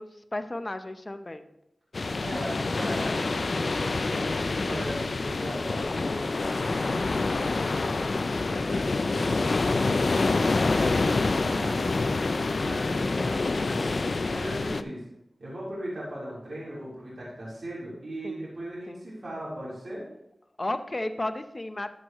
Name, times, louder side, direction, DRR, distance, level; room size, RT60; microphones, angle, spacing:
voice 1, 0.0-1.5 18.2-18.4 18.9-19.0 20.6-21.9, left 2 dB, 35° left, 9 dB, 0.7 m, -33 dB
sound 1, 1.9-14.8, left 3 dB, 65° left, 0.4 m, -27 dB
voice 2, 2.2-15.0 15.4-20.0, equal, 65° right, -8 dB, 3.7 m, -38 dB
12.5 x 6.4 x 3.1 m, 0.83 s
cardioid pair, 50°, 0 cm